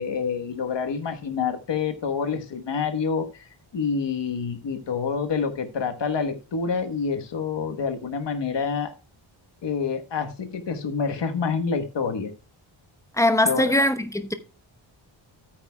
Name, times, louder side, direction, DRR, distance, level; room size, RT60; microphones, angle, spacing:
voice 1, 0.0-3.5 3.7-8.9 9.6-12.3 13.4-13.7, left 5 dB, 60° left, 1.3 m, -27 dB
voice 2, 13.2-14.3, left 1 dB, 5° left, 1.0 m, -21 dB
13.0 x 9.2 x 2.3 m
wide cardioid pair, 145°, 48 cm